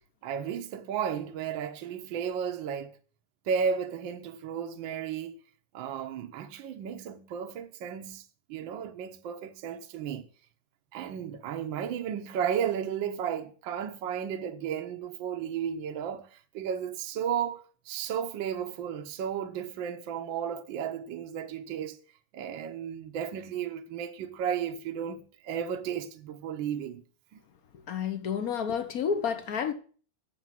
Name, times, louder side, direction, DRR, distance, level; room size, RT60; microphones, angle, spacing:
voice 1, 0.2-2.9 3.5-5.3 5.7-10.2 10.9-22.0 22.3-27.0 27.3-27.4, right 8 dB, 65° right, 1.4 m, -34 dB
voice 2, 27.7-29.7, left 7 dB, 55° left, 1.1 m, -30 dB
8.3 x 7.0 x 7.5 m
omnidirectional pair, 2.4 m